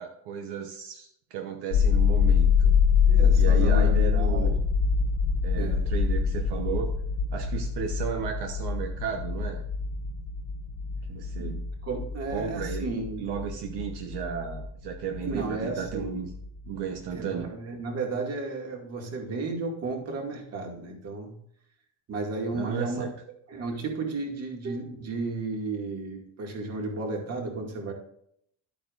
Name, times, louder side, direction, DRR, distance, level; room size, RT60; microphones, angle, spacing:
voice 1, 0.0-2.7 3.4-4.6 5.4-6.9 7.3-9.6 11.1-11.6 12.3-12.9 13.2-16.3 16.7-17.5 22.5-23.1, right 7 dB, 70° right, 4 dB, 1.1 m, -34 dB
sound 1, 1.7-15.5 15.9-16.8, left 6 dB, 90° left, 1.7 m, -25 dB
voice 2, 3.1-4.6 5.6-5.8 11.4-13.3 15.2-16.2 17.1-21.4 22.1-23.1 23.5-27.9, right 3 dB, 35° right, 2 dB, 2.3 m, -33 dB
12.0 x 8.6 x 2.5 m, 0.70 s
cardioid pair, 170°, 41 cm